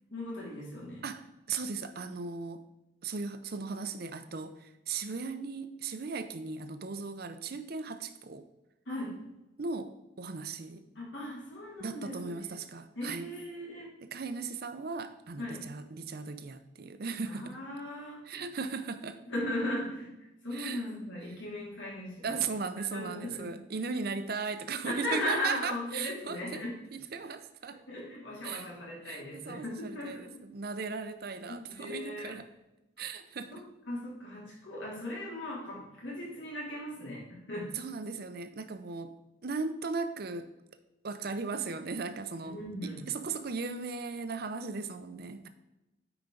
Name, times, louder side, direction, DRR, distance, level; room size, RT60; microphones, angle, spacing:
voice 1, 0.1-1.0 8.9-9.2 10.9-12.3 12.9-13.9 15.4-15.6 17.2-18.4 19.3-20.1 20.4-22.4 22.9-23.5 24.8-26.8 27.1-27.2 27.9-30.4 31.5-32.3 33.5-33.6 33.9-37.7 42.4-43.0, left 1 dB, 75° left, -4 dB, 3.0 m, -38 dB
voice 2, 1.0-2.6 3.0-8.5 9.6-10.8 11.8-13.3 14.0-17.6 18.2-19.2 20.5-20.8 22.2-26.6 26.9-27.8 28.4-28.6 29.1-32.5 33.0-33.6 37.7-39.2 39.4-40.5 41.0-45.5, right 4 dB, 55° right, 10 dB, 0.6 m, -37 dB
9.0 x 5.1 x 3.9 m, 0.97 s
head